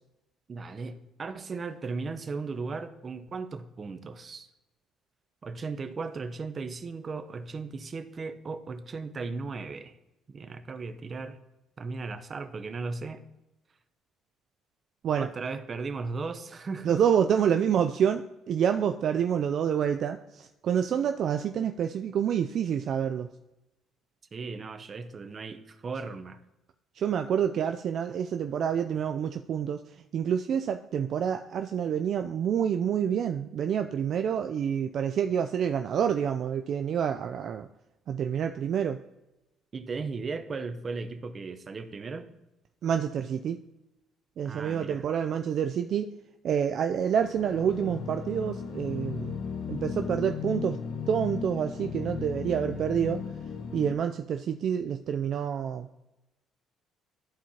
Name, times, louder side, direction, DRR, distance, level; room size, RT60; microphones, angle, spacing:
voice 1, 0.5-4.5 5.4-9.9 10.3-11.4 11.8-13.2 15.2-17.0 24.3-26.4 39.7-42.3 44.4-45.0, right 4 dB, 35° right, 10 dB, 0.7 m, -36 dB
voice 2, 16.8-23.3 27.0-29.8 30.1-37.7 38.1-39.0 42.8-43.6 44.4-46.1 46.4-49.4 49.7-50.8 51.1-53.2 53.7-56.0, right 8 dB, 55° right, 7 dB, 0.4 m, -28 dB
sound 1, 47.0-53.9, left 6 dB, 65° left, 0.9 m, -36 dB
13.5 x 4.5 x 2.8 m, 0.95 s
cardioid pair, 105°, 0 cm